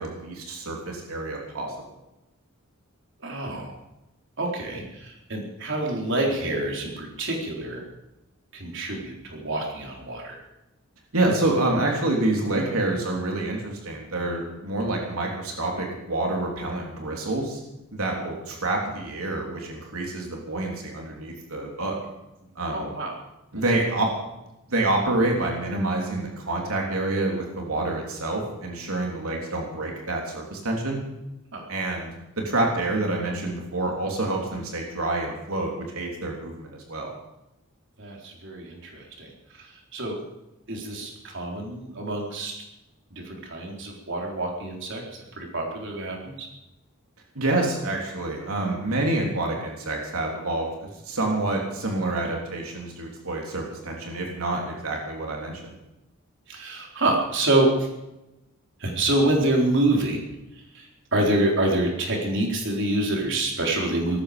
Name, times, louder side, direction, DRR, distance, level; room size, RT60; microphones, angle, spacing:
voice 1, 0.0-1.7 11.1-17.6 17.9-22.0 22.6-22.9 23.5-24.1 24.7-31.0 31.7-32.1 32.4-37.1 47.4-55.8, right 2 dB, 90° right, 0 dB, 3.5 m, -27 dB
voice 2, 3.2-3.7 4.4-7.8 8.5-10.4 22.7-23.1 31.5-31.6 38.0-39.3 39.9-40.2 40.7-42.5 43.3-45.0 45.4-46.5 56.5-57.9 58.8-60.2 60.7-60.8 61.1-64.2, right 2 dB, 60° right, 0 dB, 4.1 m, -26 dB
19.0 x 14.5 x 5.2 m, 0.94 s
head